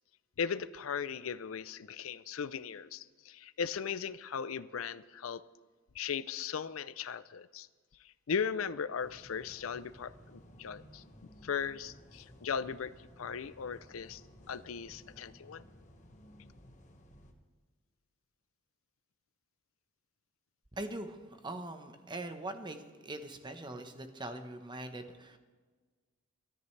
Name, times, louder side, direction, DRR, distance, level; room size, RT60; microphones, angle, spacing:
voice 1, 0.4-5.4 5.9-7.7 8.3-11.0 11.4-14.2 14.5-15.6, left 6 dB, 90° left, 16 dB, 0.5 m, -37 dB
sound 1, 9.0-17.3, equal, 35° left, 1.5 m, -57 dB
voice 2, 20.7-25.4, right 1 dB, 20° right, 7 dB, 1.1 m, -42 dB
23.5 x 13.0 x 3.3 m, 1.4 s
head